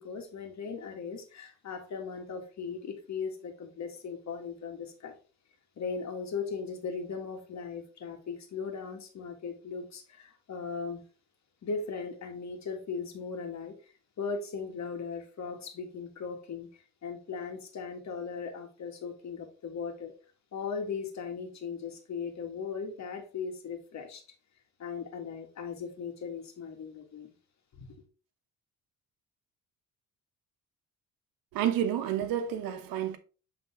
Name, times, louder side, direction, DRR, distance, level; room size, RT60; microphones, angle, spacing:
voice 1, 0.0-5.1 5.8-11.0 11.6-16.7 17.0-20.1 20.5-24.2 24.8-27.3 27.8-27.9, left 5 dB, 55° left, 1.8 m, -38 dB
voice 2, 31.5-33.2, right 10 dB, 85° right, 0.9 m, -29 dB
7.6 x 3.6 x 3.5 m
cardioid pair, 85°, 34 cm